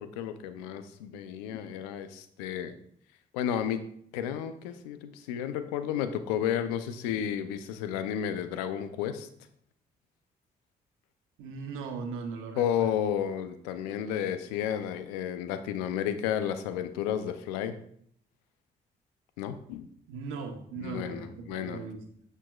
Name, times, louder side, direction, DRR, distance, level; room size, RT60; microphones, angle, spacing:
voice 1, 0.0-2.7 3.3-3.8 4.1-9.3 12.6-17.7 19.4-19.9 20.8-21.8, left 9 dB, 90° left, 11 dB, 0.5 m, -32 dB
voice 2, 11.4-12.9 20.1-22.2, right 4 dB, 80° right, 5 dB, 1.0 m, -39 dB
8.8 x 6.8 x 2.3 m, 0.67 s
hypercardioid pair, 45°, 21 cm